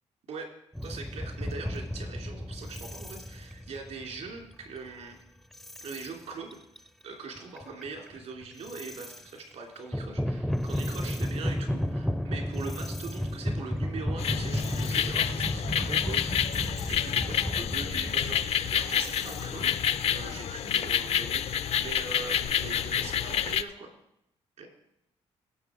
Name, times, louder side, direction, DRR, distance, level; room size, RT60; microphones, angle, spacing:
sound 1, 0.7-5.0 5.5-6.1 6.5-6.9 7.4-9.2 9.8-20.5, equal, ahead, 0.5 m, -34 dB
voice 1, 0.8-5.2 5.8-6.6 7.0-19.8 20.1-23.9 24.6-24.7, right 4 dB, 70° right, 2 dB, 2.9 m, -42 dB
sound 2, 14.2-23.6, left 9 dB, 65° left, 0.5 m, -29 dB
17.5 x 6.5 x 5.0 m, 0.79 s
cardioid pair, 110°, 12 cm